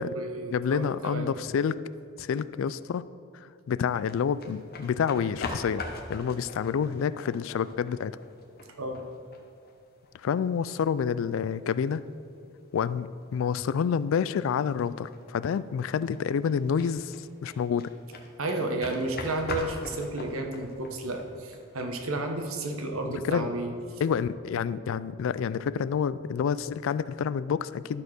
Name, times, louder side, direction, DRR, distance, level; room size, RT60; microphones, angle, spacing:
voice 1, 0.0-1.3 8.8-9.0 18.4-23.7, right 2 dB, 85° right, 4 dB, 1.1 m, -32 dB
voice 2, 0.5-1.8 2.2-3.0 3.3-5.8 6.1-8.1 10.1-12.0 12.7-17.9 23.0-23.5 24.0-28.0, left 7 dB, 65° left, 16 dB, 0.3 m, -28 dB
sound 1, 4.0-21.9, left 2 dB, 45° left, 0.9 m, -43 dB
12.0 x 4.3 x 6.5 m, 2.4 s
head